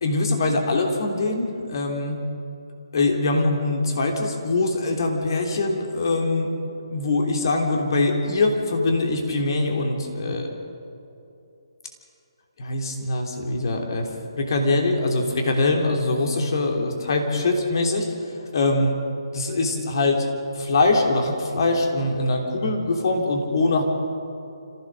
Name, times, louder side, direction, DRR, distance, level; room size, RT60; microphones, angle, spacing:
voice 1, 0.0-2.2 2.9-6.5 6.9-10.5 12.6-14.1 14.4-18.1 18.5-19.0 19.3-20.3 20.5-23.8, left 2 dB, 55° left, 2 dB, 3.1 m, -23 dB
26.5 x 15.5 x 6.6 m, 2.8 s
figure-of-eight pair, 145°, 3 cm